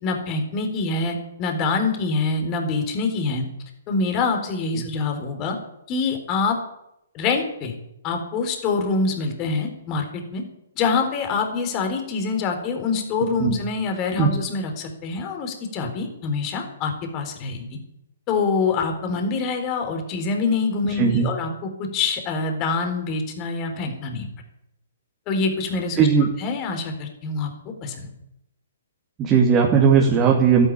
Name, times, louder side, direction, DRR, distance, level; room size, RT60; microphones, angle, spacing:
voice 1, 0.0-3.4 3.9-5.6 5.9-6.6 7.1-7.8 8.0-10.4 10.8-17.8 18.3-24.3 25.3-26.1 26.4-27.5 27.8-28.1, left 4 dB, 30° left, 5 dB, 4.0 m, -25 dB
voice 2, 20.8-21.3 26.0-26.3 29.2-30.7, right 6 dB, 20° right, -1 dB, 2.7 m, -18 dB
13.5 x 12.0 x 8.8 m, 0.83 s
figure-of-eight pair, 125°, 0 cm